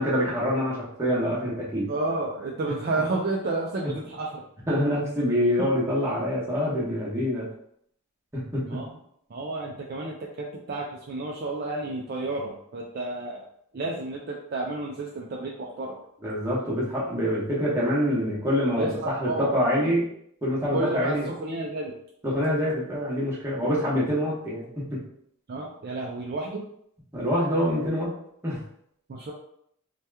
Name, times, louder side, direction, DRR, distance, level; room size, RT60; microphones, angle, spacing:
voice 1, 0.0-1.9 3.8-3.9 4.7-7.5 8.3-8.8 16.2-20.0 20.4-21.3 22.2-25.0 27.1-28.1 28.4-28.6, equal, 10° right, -7 dB, 0.9 m, -26 dB
voice 2, 1.9-4.4 5.6-5.7 8.6-8.9 9.3-13.4 13.7-16.0 18.8-19.5 20.7-21.9 25.5-26.7 29.1-29.3, right 2 dB, 45° right, -2 dB, 0.4 m, -31 dB
2.8 x 2.3 x 3.3 m, 0.69 s
head